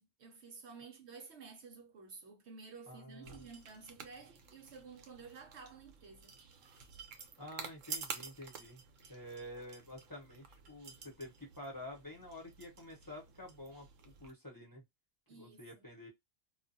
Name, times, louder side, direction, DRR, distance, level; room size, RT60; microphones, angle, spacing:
voice 1, 0.0-6.4 15.3-15.9, right 5 dB, 65° right, 0.8 m, -53 dB
voice 2, 2.9-3.4 7.4-8.8 9.1-13.9 14.2-14.8 15.3-16.1, left 1 dB, 20° left, 0.9 m, -49 dB
sound 1, 3.2-14.3, right 5 dB, 90° right, 1.0 m, -50 dB
2.4 x 2.3 x 2.6 m
omnidirectional pair, 1.3 m